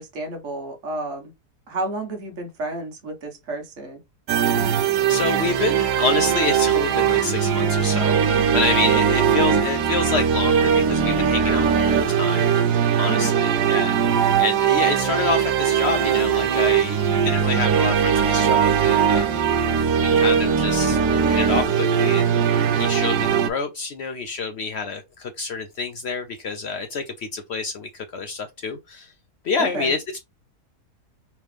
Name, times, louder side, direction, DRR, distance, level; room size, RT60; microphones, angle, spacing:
voice 1, 0.0-1.3 1.7-4.0 13.0-13.6 29.6-29.9, right 2 dB, 50° right, 1.4 m, -31 dB
sound 1, 4.3-23.5, right 7 dB, 85° right, 1.2 m, -20 dB
voice 2, 4.8-12.5 13.0-19.4 20.0-21.0 21.3-29.1 29.4-30.2, left 4 dB, 75° left, 0.6 m, -28 dB
3.4 x 3.1 x 3.2 m
omnidirectional pair, 1.7 m